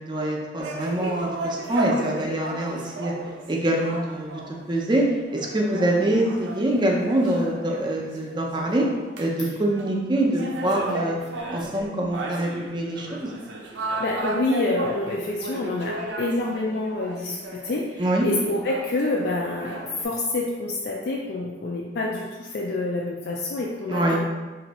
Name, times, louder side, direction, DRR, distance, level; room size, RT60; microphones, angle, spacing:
voice 1, 0.0-3.1 3.5-4.4 4.7-5.0 5.3-8.9 9.2-11.2 11.5-13.3 18.0-18.3 23.9-24.2, right 1 dB, 25° right, -1 dB, 0.5 m, -24 dB
sound 1, 0.6-9.4 9.6-17.8 18.2-20.0, right 2 dB, 85° right, 0.5 m, -34 dB
voice 2, 13.8-17.4 17.6-24.2, left 2 dB, 60° left, -2 dB, 0.4 m, -27 dB
3.1 x 2.6 x 4.0 m, 1.2 s
head